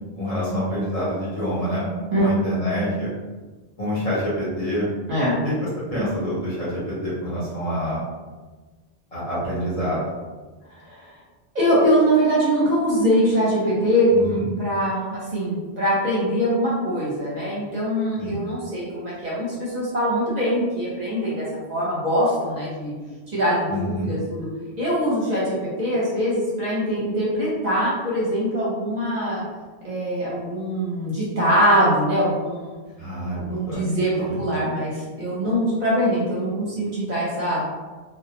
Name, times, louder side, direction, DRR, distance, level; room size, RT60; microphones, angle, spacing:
voice 1, 0.1-1.8 2.2-3.1 3.8-4.9 5.4-5.5 5.9-8.0 9.1-10.1 14.1-14.5 18.2-18.3 23.7-24.1 33.0-33.9 34.3-34.4, equal, 40° left, -9 dB, 0.7 m, -26 dB
voice 2, 10.7-11.1 11.5-21.4 21.7-22.9 23.3-24.5 24.8-29.4 29.8-32.8 33.3-37.6, equal, 50° right, -7 dB, 0.7 m, -23 dB
2.2 x 2.0 x 2.8 m, 1.3 s
omnidirectional pair, 1.0 m